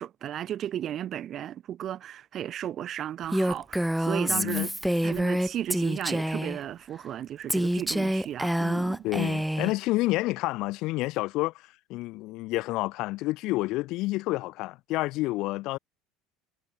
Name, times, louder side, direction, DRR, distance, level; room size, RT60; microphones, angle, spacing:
voice 1, 0.0-4.7 5.0-9.0, right 11 dB, 40° right, 4.6 m, -34 dB
Female speech woman speaking, 3.3-6.6 7.5-9.7, equal, 5° right, 2.4 m, -27 dB
voice 2, 4.3-4.7 9.0-15.8, left 19 dB, 55° left, 1.8 m, -29 dB
figure-of-eight pair, 70°, 0 cm